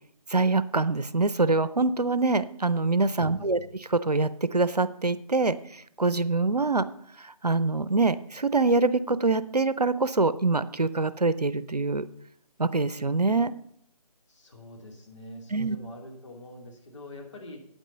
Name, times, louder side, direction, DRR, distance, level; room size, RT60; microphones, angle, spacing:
voice 1, 0.3-3.6 3.9-6.8 7.2-12.0 12.6-13.5 15.5-15.8, right 3 dB, 90° right, 15 dB, 0.7 m, -25 dB
voice 2, 3.2-3.8 14.3-17.6, left 1 dB, 50° left, 0 dB, 2.5 m, -45 dB
9.1 x 9.1 x 5.3 m, 0.70 s
figure-of-eight pair, 155°, 20 cm